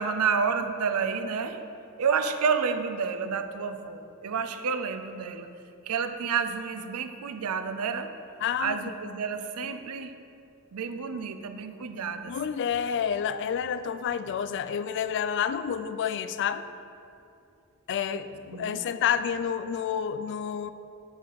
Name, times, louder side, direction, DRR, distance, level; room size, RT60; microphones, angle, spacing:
voice 1, 0.0-1.6 2.0-5.5 5.9-8.1 8.6-10.2 10.7-12.3 18.5-18.8, right 6 dB, 90° right, 8 dB, 0.5 m, -29 dB
voice 2, 8.4-8.9 12.3-16.6 17.9-20.7, left 8 dB, 55° left, 12 dB, 0.3 m, -29 dB
7.8 x 6.5 x 4.0 m, 2.5 s
head